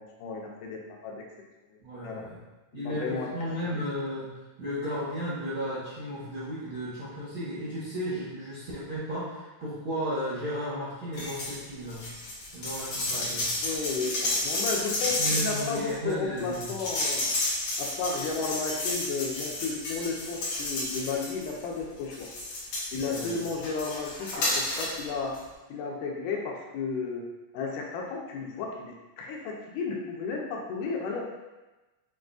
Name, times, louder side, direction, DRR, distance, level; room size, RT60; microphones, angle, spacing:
voice 1, 0.2-1.3 1.7-2.2 2.7-3.3 3.6-3.8 13.1-13.3 13.6-17.3 17.8-22.3 22.9-25.3 25.7-27.3 27.5-31.3, left 4 dB, 80° left, 0 dB, 2.1 m, -33 dB
voice 2, 1.8-2.4 2.7-4.3 4.6-12.1 12.5-13.5 15.2-16.7 23.0-23.3, equal, 70° right, -13 dB, 1.2 m, -34 dB
sound 1, 11.1-11.6 11.9-21.6 22.1-25.0 25.3-25.4, left 2 dB, 65° left, 1.6 m, -31 dB
6.0 x 2.5 x 2.3 m, 1.1 s
omnidirectional pair, 3.8 m